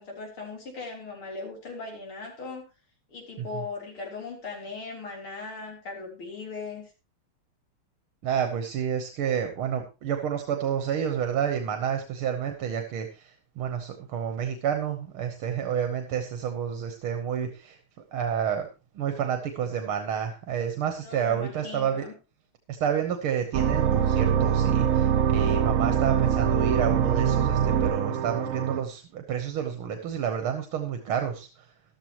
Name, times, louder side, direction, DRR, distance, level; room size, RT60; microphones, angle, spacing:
voice 1, 0.0-2.7 3.1-6.9 21.0-22.1, left 4 dB, 80° left, 0 dB, 4.4 m, -38 dB
voice 2, 8.2-17.8 18.1-18.7 19.0-22.1 22.7-31.7, right 8 dB, 80° right, 6 dB, 2.0 m, -29 dB
sound 1, 23.5-28.8, right 8 dB, 60° right, 0.9 m, -23 dB
13.5 x 12.5 x 3.0 m, 0.30 s
omnidirectional pair, 2.3 m